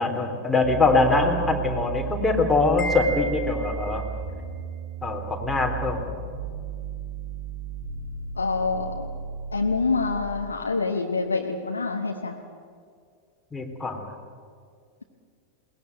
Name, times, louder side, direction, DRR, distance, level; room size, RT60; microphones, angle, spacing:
voice 1, 0.0-4.0 5.0-6.0 13.5-14.0, left 3 dB, 5° left, -1 dB, 3.5 m, -23 dB
sound 1, 0.6-10.2, right 6 dB, 60° right, 5.8 m, -34 dB
Wind chime, 2.8-4.2, right 2 dB, 35° left, 2.6 m, -34 dB
voice 2, 8.3-9.1 9.5-12.4, left 4 dB, 75° left, 2 dB, 1.4 m, -26 dB
21.5 x 19.0 x 9.1 m, 2.2 s
figure-of-eight pair, 90°, 0 cm